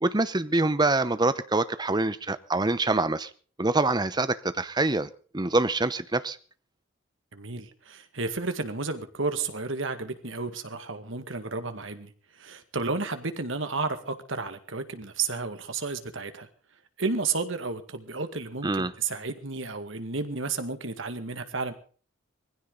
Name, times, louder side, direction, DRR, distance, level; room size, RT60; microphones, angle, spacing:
voice 1, 0.0-3.3 3.6-6.4 18.6-18.9, right 2 dB, 20° right, 13 dB, 0.8 m, -25 dB
voice 2, 7.3-16.5 17.0-21.7, right 4 dB, 70° right, 9 dB, 1.9 m, -32 dB
20.0 x 16.0 x 4.0 m, 0.42 s
head